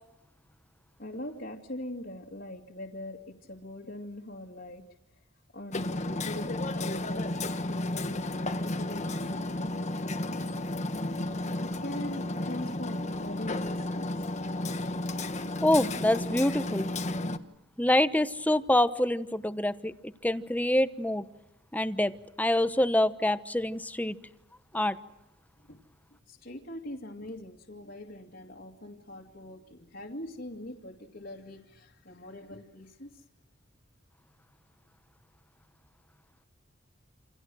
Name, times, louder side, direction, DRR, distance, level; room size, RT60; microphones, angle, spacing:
voice 1, 1.0-4.8 5.1-5.2 5.5-7.3 7.7-9.9 11.6-14.3 24.7-24.9 25.7-25.8 26.3-33.2, left 1 dB, 55° left, 0 dB, 2.5 m, -42 dB
Hammer, 5.7-17.4, left 2 dB, 35° left, 1.5 m, -33 dB
voice 2, 15.6-16.9 17.8-19.9 20.2-21.2 21.7-22.1 22.4-24.2 24.7-25.0, left 1 dB, 10° left, 12 dB, 1.0 m, -26 dB
29.0 x 27.5 x 6.4 m, 0.92 s
head